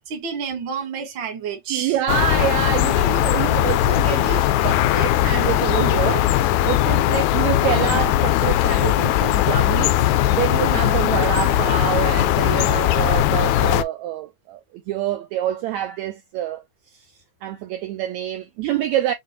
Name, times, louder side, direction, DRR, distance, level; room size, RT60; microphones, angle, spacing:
voice 1, 0.1-1.9 6.6-6.8, right 6 dB, 50° right, 1.5 m, -29 dB
voice 2, 1.7-6.3 6.6-14.6 14.9-16.6 16.9-17.0 17.4-19.1, right 12 dB, 80° right, 1.7 m, -26 dB
sound 1, 2.1-13.8, left 13 dB, 80° left, 1.7 m, -19 dB
6.8 x 2.3 x 2.7 m
omnidirectional pair, 3.9 m